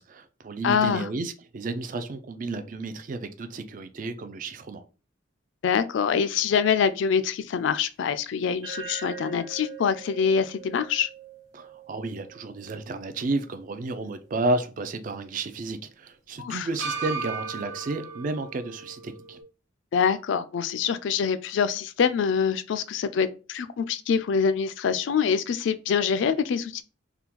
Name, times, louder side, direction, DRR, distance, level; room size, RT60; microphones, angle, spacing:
voice 1, 0.0-4.8 11.5-19.4, right 2 dB, 40° right, 0.3 m, -32 dB
voice 2, 0.6-1.1 5.6-11.1 16.4-16.7 19.9-26.8, left 6 dB, 65° left, 0.3 m, -25 dB
sound 1, 8.6-12.9 13.3-13.4 16.8-19.4, right 5 dB, 90° right, 1.3 m, -38 dB
3.6 x 2.2 x 2.9 m
head